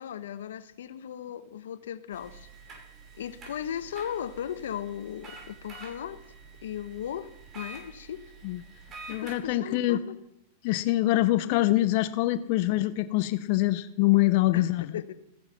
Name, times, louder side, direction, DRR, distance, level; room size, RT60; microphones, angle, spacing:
voice 1, 0.0-2.8 3.2-6.2 6.6-7.3 7.5-8.2 9.1-10.2 14.5-15.1, left 9 dB, 80° left, 0.9 m, -37 dB
sound 1, 2.1-9.4, right 3 dB, 30° right, 5.7 m, -47 dB
voice 2, 9.1-10.0 10.6-15.0, left 16 dB, 55° left, 0.6 m, -24 dB
14.0 x 10.5 x 5.9 m
hypercardioid pair, 120°, 0 cm